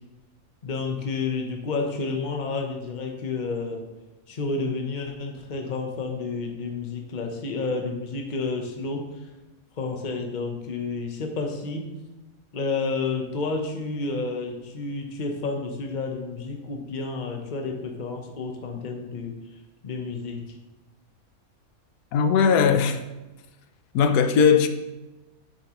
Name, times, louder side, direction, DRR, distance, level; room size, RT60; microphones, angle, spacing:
voice 1, 0.6-3.8 4.3-9.0 9.8-11.9 12.5-19.3 19.8-20.4, left 3 dB, 35° left, 0.9 m, -30 dB
voice 2, 22.1-23.0 23.9-24.7, left 6 dB, 90° left, 1.2 m, -19 dB
7.4 x 7.3 x 3.1 m
omnidirectional pair, 1.6 m